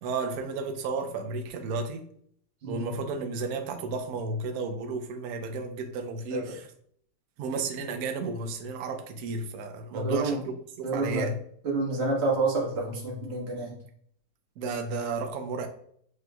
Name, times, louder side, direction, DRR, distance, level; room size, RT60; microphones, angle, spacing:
voice 1, 0.0-2.1 2.6-6.7 7.4-10.4 10.8-11.4 14.6-15.7, right 3 dB, 65° right, 1.0 m, -33 dB
voice 2, 9.9-10.4 10.8-11.3 11.6-13.7, right 3 dB, 45° right, 1.1 m, -28 dB
6.6 x 3.1 x 2.2 m
omnidirectional pair, 2.0 m